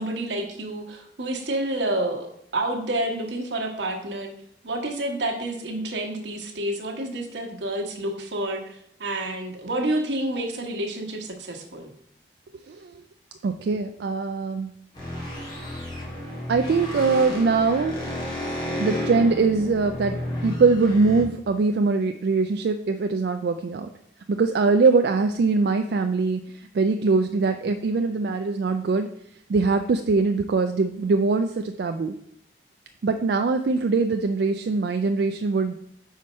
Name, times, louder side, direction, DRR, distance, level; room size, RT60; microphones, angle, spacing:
voice 1, 0.0-4.3 4.6-11.9, right 1 dB, 90° right, 2 dB, 1.2 m, -29 dB
voice 2, 13.4-14.7 16.5-17.9 18.8-23.9 24.3-26.4 26.7-29.1 29.5-32.1 33.0-35.7, right 4 dB, 70° right, 6 dB, 0.3 m, -22 dB
sound 1, 14.9-21.2, left 1 dB, 25° left, 1.8 m, -32 dB
5.0 x 4.0 x 5.4 m, 0.71 s
head